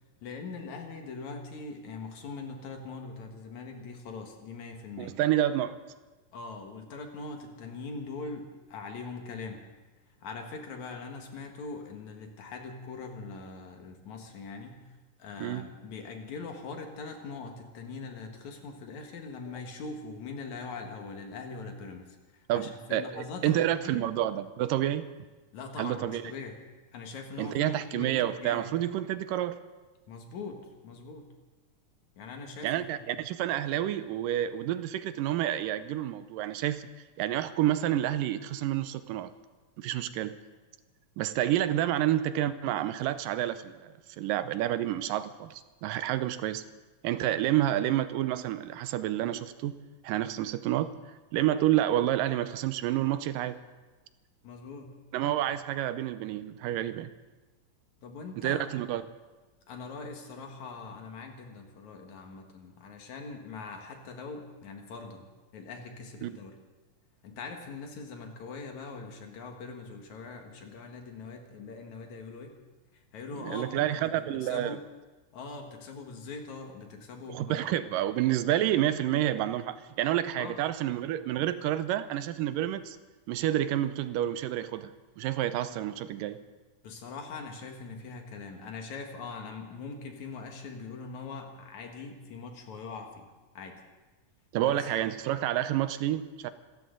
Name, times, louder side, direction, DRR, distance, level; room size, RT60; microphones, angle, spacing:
voice 1, 0.2-5.2 6.3-9.7 10.2-14.8 15.2-24.1 25.5-26.6 26.9-28.7 30.1-31.3 32.2-33.2 54.4-55.0 58.0-58.8 59.7-65.3 65.5-66.6 67.2-72.6 72.9-74.8 75.3-77.7 77.9-78.0 80.4-80.6 86.8-93.3 93.5-93.8 94.6-94.9, left 4 dB, 60° left, 3 dB, 2.8 m, -42 dB
voice 2, 5.0-5.8 15.4-15.7 22.5-25.1 25.8-26.2 27.4-29.6 32.6-36.9 37.2-39.3 39.8-40.3 41.2-46.6 47.0-49.7 50.0-50.9 51.3-53.6 55.1-57.1 58.4-59.0 66.2-66.4 73.4-74.8 77.3-83.0 83.3-86.4 94.5-96.5, right 12 dB, 85° right, 12 dB, 2.3 m, -29 dB
27.0 x 14.0 x 3.9 m, 1.2 s
omnidirectional pair, 3.9 m